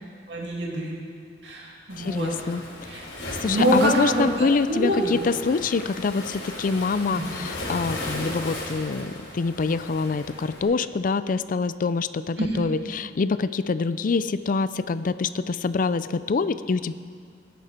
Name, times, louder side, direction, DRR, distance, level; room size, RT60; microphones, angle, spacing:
voice 1, 0.3-0.9 1.4-2.3 2.8-3.0 3.5-5.1 7.1-7.3 12.4-12.6, right 1 dB, 75° right, -3 dB, 2.7 m, -25 dB
Waves surf, 1.9-10.6, left 1 dB, 80° left, 3.3 m, -36 dB
voice 2, 2.0-2.6 3.4-16.9, left 4 dB, 50° left, 14 dB, 0.4 m, -25 dB
17.0 x 10.5 x 4.4 m, 2.2 s
head